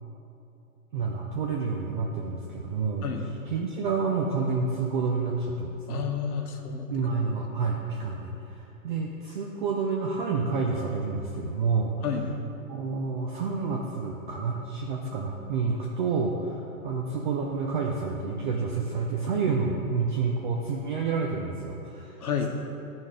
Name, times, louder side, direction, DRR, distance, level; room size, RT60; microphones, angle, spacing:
voice 1, 0.9-3.1 3.5-6.1 6.9-12.0 12.7-22.5, right 4 dB, 35° right, 0 dB, 0.5 m, -29 dB
voice 2, 5.9-7.1 7.6-7.7 12.0-12.4 22.2-22.5, left 6 dB, 85° left, 3 dB, 1.0 m, -31 dB
10.5 x 4.1 x 5.0 m, 2.9 s
hypercardioid pair, 145°, 44 cm